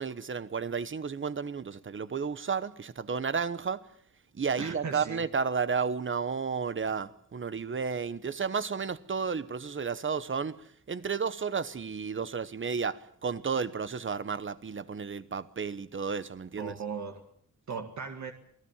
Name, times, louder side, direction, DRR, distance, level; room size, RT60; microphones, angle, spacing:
voice 1, 0.0-3.9 4.3-16.7, right 5 dB, 40° right, 1.0 m, -32 dB
voice 2, 4.6-5.2 16.6-17.2 17.7-18.3, right 5 dB, 60° right, 2.0 m, -37 dB
28.0 x 18.5 x 7.3 m
wide cardioid pair, 160°, 33 cm